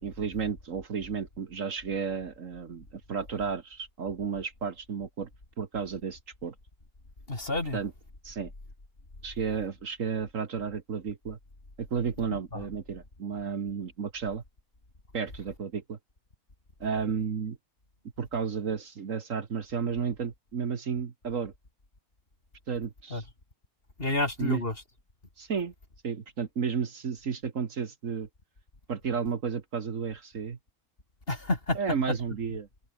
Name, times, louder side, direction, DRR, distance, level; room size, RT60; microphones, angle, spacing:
voice 1, 0.0-5.3 5.6-6.5 7.7-7.9 8.2-8.5 9.2-11.4 11.8-14.4 15.1-16.0 16.8-17.6 18.2-21.5 22.7-23.3 24.4-24.6 25.4-25.7 26.0-28.3 28.9-30.6 31.7-32.7, right 6 dB, 60° right, 1.8 m, -32 dB
voice 2, 7.3-7.8 12.2-12.6 23.1-23.2 24.0-24.7 31.3-31.8, left 2 dB, 35° left, 4.4 m, -30 dB
omnidirectional pair, 1.6 m